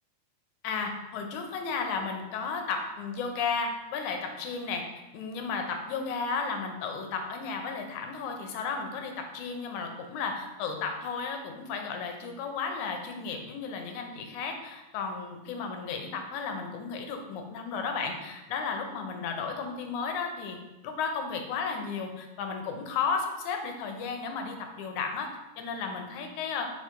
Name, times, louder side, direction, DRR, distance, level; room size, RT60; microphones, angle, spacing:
voice 1, 0.6-4.8 5.1-20.6 20.8-26.7, left 5 dB, 85° left, 4 dB, 2.1 m, -34 dB
4.9 x 4.6 x 4.5 m, 1.0 s
omnidirectional pair, 3.4 m